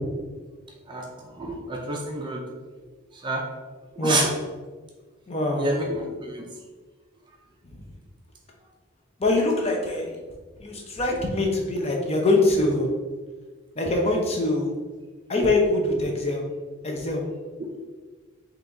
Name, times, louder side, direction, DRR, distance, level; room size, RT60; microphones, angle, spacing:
voice 1, 1.4-2.4 3.2-3.4 4.0-4.3 5.6-6.4, right 2 dB, 20° right, 0 dB, 0.4 m, -27 dB
voice 2, 5.3-5.7 9.2-10.1 10.6-12.9 13.8-14.7 15.3-16.4 16.8-17.2, left 2 dB, 30° left, 0 dB, 0.6 m, -23 dB
3.9 x 2.9 x 3.5 m, 1.4 s
head